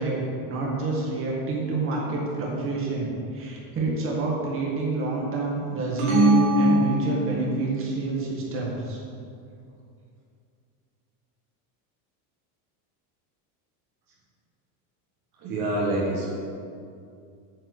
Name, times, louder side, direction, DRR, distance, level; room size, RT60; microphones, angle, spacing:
voice 1, 0.0-9.0, right 3 dB, 30° right, -3 dB, 1.6 m, -28 dB
sound 1, 6.0-7.7, right 1 dB, 75° right, 2.2 m, -21 dB
voice 2, 15.4-16.3, right 1 dB, 50° right, -3 dB, 1.4 m, -26 dB
9.1 x 4.5 x 6.4 m, 2.4 s
cardioid pair, 165°, 45 cm